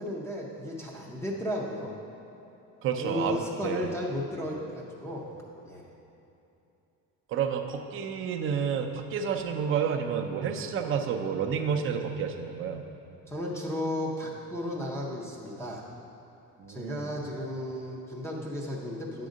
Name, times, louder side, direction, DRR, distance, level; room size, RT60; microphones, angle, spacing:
voice 1, 0.0-1.9 3.0-5.4 5.6-5.9 13.3-15.9 16.7-19.3, left 1 dB, 10° left, -4 dB, 0.6 m, -34 dB
voice 2, 2.8-3.9 7.3-12.8 16.6-17.1, right 7 dB, 45° right, 4 dB, 0.5 m, -30 dB
9.4 x 3.8 x 6.3 m, 2.9 s
cardioid pair, 170°, 31 cm